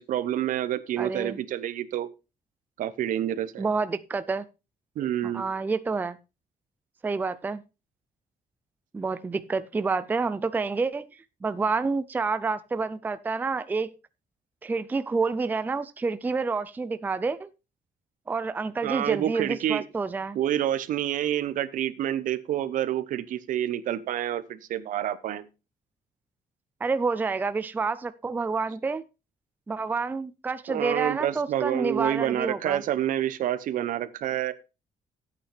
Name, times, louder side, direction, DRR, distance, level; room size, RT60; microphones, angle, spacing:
voice 1, 0.0-2.1 2.8-3.6 5.0-5.4 18.8-19.8 20.3-25.4 30.7-34.5, right 11 dB, 70° right, 13 dB, 0.8 m, -28 dB
voice 2, 1.0-1.4 3.6-4.5 5.2-6.2 7.0-7.6 8.9-11.1 11.4-13.9 14.6-17.5 18.3-20.4 26.8-29.0 29.7-32.8, right 4 dB, 10° right, 13 dB, 0.4 m, -28 dB
13.0 x 8.6 x 3.3 m, 0.29 s
cardioid pair, 165°, 14 cm